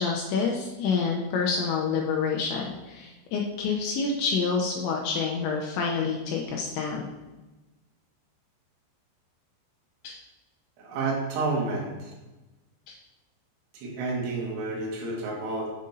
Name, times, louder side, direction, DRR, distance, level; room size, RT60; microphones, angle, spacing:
voice 1, 0.0-7.1 10.0-10.2 12.9-13.0, left 5 dB, 85° left, 0 dB, 2.7 m, -28 dB
voice 2, 10.8-12.1 13.7-15.7, right 3 dB, 80° right, -3 dB, 4.1 m, -30 dB
8.4 x 7.6 x 2.7 m, 1.1 s
omnidirectional pair, 5.7 m